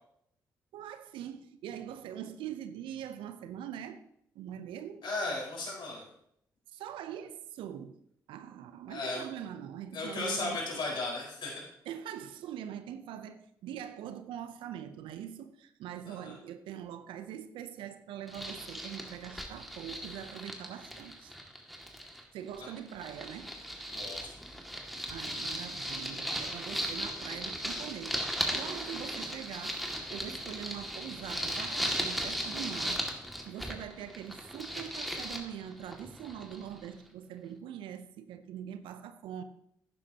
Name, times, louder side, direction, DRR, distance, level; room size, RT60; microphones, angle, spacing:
voice 1, 0.7-4.0 4.3-5.0 6.7-8.0 8.3-10.6 11.9-21.3 22.3-23.6 25.1-33.1 33.4-39.4, right 10 dB, 80° right, 0.5 m, -43 dB
voice 2, 5.0-6.0 8.9-9.2 9.9-11.5 16.1-16.4 23.9-24.3, left 3 dB, 65° left, 4.5 m, -35 dB
sound 1, 18.3-22.2 22.5-36.9, equal, ahead, 2.0 m, -37 dB
11.5 x 9.8 x 2.8 m
hypercardioid pair, 45°, 9 cm